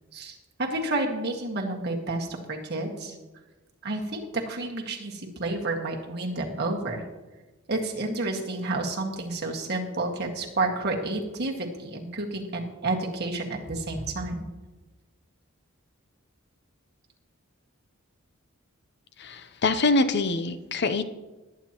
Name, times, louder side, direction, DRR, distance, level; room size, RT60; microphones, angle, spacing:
voice 1, 0.1-3.2 3.8-7.0 7.7-14.5, right 2 dB, 50° right, 0 dB, 1.8 m, -30 dB
voice 2, 19.2-21.1, left 3 dB, 55° left, 11 dB, 0.6 m, -25 dB
20.0 x 8.9 x 3.0 m, 1.2 s
head